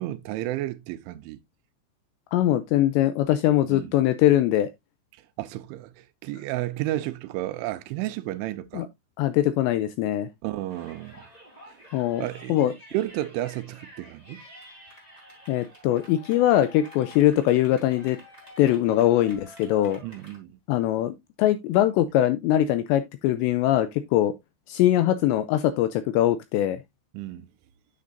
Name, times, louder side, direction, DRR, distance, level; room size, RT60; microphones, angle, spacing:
voice 1, 0.0-1.4 3.7-3.9 5.4-8.9 10.4-11.3 11.7-11.8 12.2-12.6 12.9-14.4 20.0-20.6 27.1-27.5, right 15 dB, 85° right, 3.0 m, -32 dB
voice 2, 2.3-4.7 8.7-8.9 9.2-10.3 11.9-12.7 15.5-18.2 18.6-20.0 20.7-24.3 24.7-26.8, left 13 dB, 85° left, 2.5 m, -22 dB
Yell, 10.7-20.4, left 1 dB, 10° left, 3.1 m, -49 dB
9.5 x 7.4 x 2.5 m
omnidirectional pair, 5.5 m